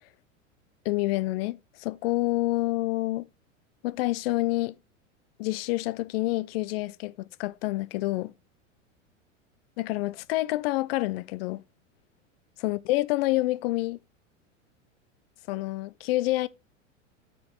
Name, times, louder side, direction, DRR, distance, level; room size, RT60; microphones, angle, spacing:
voice 1, 0.8-3.3 3.8-4.8 5.4-8.3 9.8-11.6 12.6-14.0 15.5-16.5, left 19 dB, 50° left, 0.6 m, -28 dB
8.4 x 5.2 x 3.9 m
hypercardioid pair, 90°, 37 cm